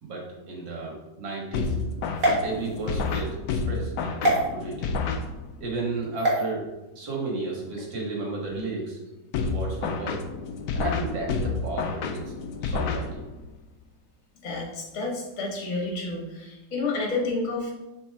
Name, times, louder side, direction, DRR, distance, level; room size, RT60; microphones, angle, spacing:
voice 1, 0.0-1.8 2.4-4.9 5.6-6.6 6.9-9.0 9.4-10.2 10.7-12.3 12.6-13.3, right 3 dB, 75° right, -2 dB, 2.3 m, -33 dB
sound 1, 1.5-5.7 9.3-13.5, left 4 dB, 70° left, 1.0 m, -30 dB
sound 2, 2.2-3.2 4.2-4.4 6.2-6.4, right 1 dB, 45° right, 1.8 m, -25 dB
voice 2, 14.4-17.7, left 3 dB, 45° left, -1 dB, 1.6 m, -30 dB
6.9 x 4.1 x 3.6 m, 1.0 s
omnidirectional pair, 2.0 m